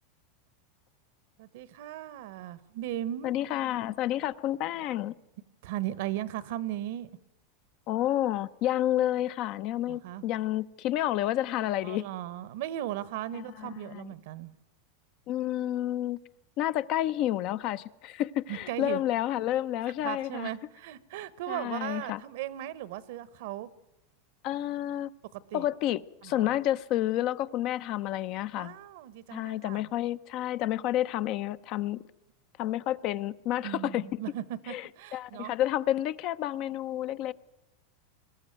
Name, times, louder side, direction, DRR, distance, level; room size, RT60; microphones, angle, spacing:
voice 1, 1.4-3.4 5.6-7.1 9.9-10.2 11.8-14.5 18.5-19.0 20.0-23.7 25.3-25.7 26.2-26.5 28.5-29.8 33.6-35.6, right 13 dB, 65° right, 17 dB, 1.0 m, -37 dB
voice 2, 3.2-5.1 7.9-12.1 13.3-14.1 15.3-16.2 16.6-20.5 21.5-22.2 24.4-25.1 25.5-28.7 29.3-32.0 32.6-34.2 34.7-37.3, left 13 dB, 45° left, 15 dB, 0.6 m, -30 dB
21.5 x 14.0 x 9.2 m, 0.97 s
supercardioid pair, 135°, 0 cm